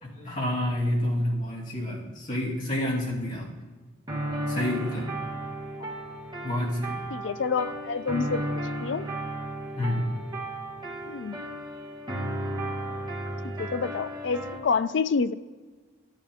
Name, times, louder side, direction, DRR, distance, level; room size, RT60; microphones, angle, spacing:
voice 1, 0.0-3.5 4.5-5.1 6.4-7.1 9.8-10.1, left 1 dB, 40° left, -5 dB, 2.6 m, -29 dB
sound 1, 4.1-14.6, right 1 dB, 20° right, 1.3 m, -34 dB
voice 2, 7.1-9.1 11.1-11.4 13.4-15.3, left 5 dB, 60° left, 13 dB, 0.4 m, -28 dB
12.0 x 9.2 x 3.6 m, 1.3 s
head